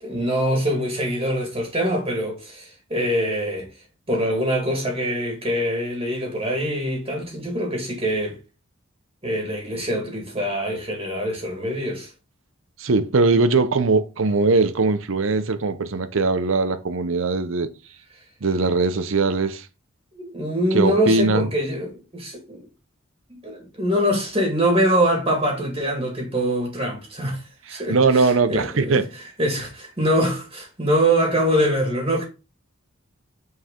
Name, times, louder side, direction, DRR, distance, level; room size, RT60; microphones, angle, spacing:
voice 1, 0.0-3.7 4.1-8.4 9.2-12.1 20.1-22.7 23.3-32.2, equal, 25° right, 1.9 m, -24 dB
voice 2, 12.8-17.7 18.4-19.7 20.7-21.5 27.7-29.1, right 3 dB, 70° right, 0.7 m, -20 dB
6.4 x 4.5 x 3.7 m
head